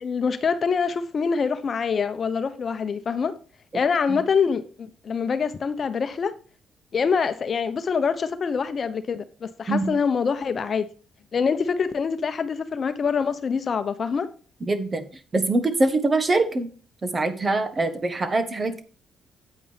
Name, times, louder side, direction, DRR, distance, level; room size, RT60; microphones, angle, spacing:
voice 1, 0.0-3.3 3.7-6.3 6.9-10.9 11.3-14.3, left 5 dB, 45° left, 0.9 m, -25 dB
voice 2, 14.7-15.0 15.3-16.7 17.0-18.8, right 2 dB, 30° right, 1.4 m, -23 dB
9.1 x 8.5 x 3.4 m
cardioid pair, 90°, 0 cm